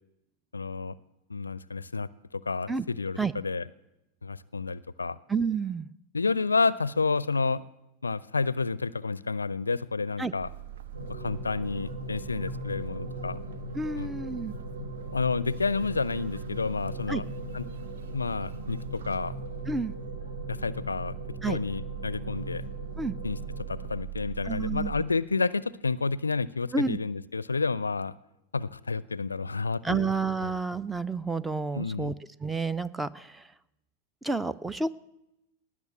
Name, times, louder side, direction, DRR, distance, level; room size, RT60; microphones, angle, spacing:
voice 1, 0.5-1.0 1.3-3.6 4.2-5.2 6.1-7.6 8.0-10.5 11.1-13.4 14.0-14.1 15.1-17.7 18.1-19.3 20.5-21.1 21.5-22.6 23.2-23.4 23.7-28.1 28.5-30.1 30.4-30.5 31.7-32.1, left 4 dB, 75° left, 20 dB, 0.4 m, -30 dB
voice 2, 5.3-5.9 10.2-10.3 13.7-14.5 17.1-17.2 19.7-19.9 21.4-21.6 23.0-23.1 24.5-24.9 26.7-27.0 29.8-32.1 32.4-33.4 34.2-34.9, right 4 dB, 10° right, 16 dB, 0.5 m, -30 dB
sound 1, 10.4-25.0, right 12 dB, 60° right, 0.7 m, -42 dB
sound 2, 10.9-23.9, left 1 dB, 75° right, 2.5 m, -40 dB
18.5 x 6.3 x 8.5 m, 0.90 s
figure-of-eight pair, 90°, 0 cm